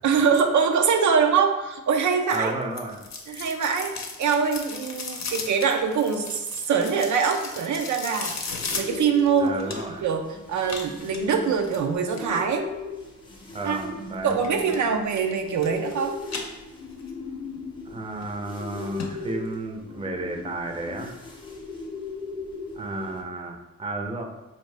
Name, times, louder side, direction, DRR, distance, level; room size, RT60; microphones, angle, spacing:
voice 1, 0.0-2.5 3.3-8.4 8.7-12.7 13.7-13.9 14.2-16.2, right 6 dB, 75° right, 4 dB, 0.5 m, -24 dB
sound 1, 2.3-10.1 10.6-12.4 14.3-14.8 15.1-15.9 16.2-17.1 17.5-17.6 18.2-18.3 18.6-18.7 19.0-19.1 19.5-19.6, left 4 dB, 65° left, 0.7 m, -36 dB
voice 2, 2.3-3.0 9.4-10.1 13.5-14.4 17.8-21.1 22.8-24.2, right 2 dB, 20° right, 2 dB, 0.5 m, -32 dB
sound 2, 8.4-23.2, left 3 dB, 15° left, 0.7 m, -38 dB
4.0 x 2.7 x 3.3 m, 1.0 s
cardioid pair, 80°, 30 cm